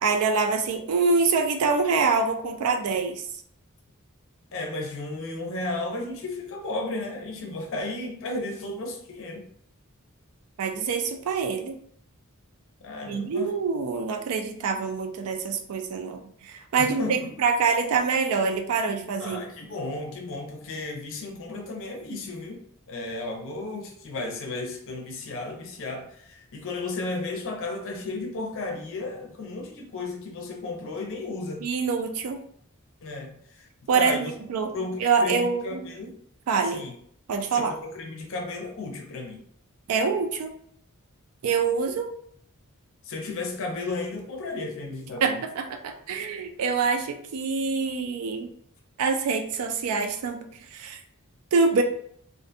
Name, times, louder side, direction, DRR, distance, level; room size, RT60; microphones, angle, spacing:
voice 1, 0.0-3.2 10.6-11.7 13.1-19.4 31.6-32.4 33.9-34.7 35.0-35.8 36.5-36.8 37.3-37.7 39.9-40.5 41.4-42.1 45.2-48.5 49.0-50.4 50.7-51.0 51.5-51.8, right 5 dB, 80° right, 5 dB, 0.4 m, -25 dB
voice 2, 4.5-9.4 12.8-13.5 16.8-17.3 19.2-31.7 33.0-33.7 33.9-34.3 34.7-36.1 36.7-36.9 37.5-39.4 43.0-45.4, left 2 dB, 60° left, 2 dB, 0.5 m, -34 dB
2.5 x 2.1 x 2.6 m, 0.64 s
head